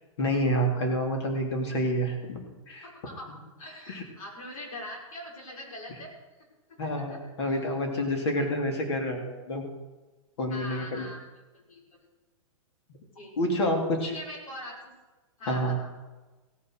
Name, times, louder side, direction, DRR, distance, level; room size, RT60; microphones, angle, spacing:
voice 1, 0.2-2.4 2.7-2.9 3.9-4.0 6.8-9.7 10.4-11.1 13.4-14.1 15.5-15.8, equal, 50° left, 2 dB, 3.1 m, -28 dB
voice 2, 2.8-3.3 3.6-6.1 6.4-6.5 6.8-7.2 7.4-7.6 8.4-8.5 10.5-11.2 11.5-12.0 13.2-13.3 14.1-14.8 15.4-15.9, left 1 dB, 85° left, -2 dB, 5.7 m, -42 dB
16.5 x 7.5 x 6.6 m, 1.2 s
hypercardioid pair, 180°, 18 cm